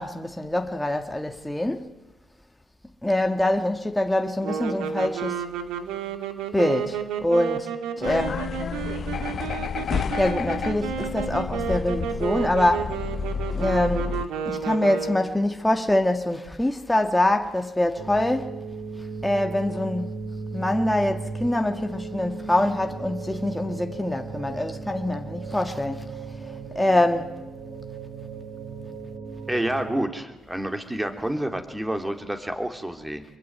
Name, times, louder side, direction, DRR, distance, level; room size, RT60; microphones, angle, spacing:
voice 1, 0.0-1.9 3.0-5.4 6.5-7.7 8.0-8.5 10.2-12.9 13.6-14.1 14.4-18.6 19.2-20.2 20.5-26.2 26.7-27.3, left 1 dB, 5° left, 1.7 m, -24 dB
sound 1, 4.4-15.4, right 7 dB, 90° right, 2.1 m, -31 dB
sound 2, 8.0-14.3, left 6 dB, 50° left, 1.1 m, -30 dB
sound 3, 18.0-30.1, right 4 dB, 50° right, 4.9 m, -36 dB
voice 2, 29.5-33.2, right 1 dB, 10° right, 3.2 m, -29 dB
25.5 x 22.5 x 9.4 m
cardioid pair, 90°, 0 cm